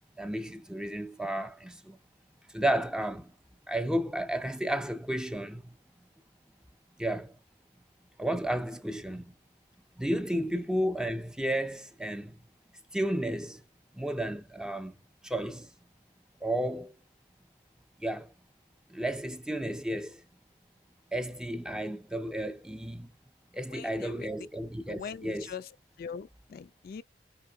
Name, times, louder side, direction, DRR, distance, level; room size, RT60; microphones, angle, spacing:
voice 1, 0.2-2.0 2.5-3.3 3.7-5.8 7.0-7.4 8.2-9.3 10.0-12.4 12.9-13.6 13.9-15.0 15.2-15.7 16.4-16.9 18.0-18.3 18.9-20.2 21.1-23.1 23.5-25.5, right 1 dB, 5° right, 0.5 m, -32 dB
voice 2, 23.7-24.3 24.9-27.0, left 6 dB, 55° left, 0.3 m, -42 dB
4.8 x 3.6 x 2.3 m
head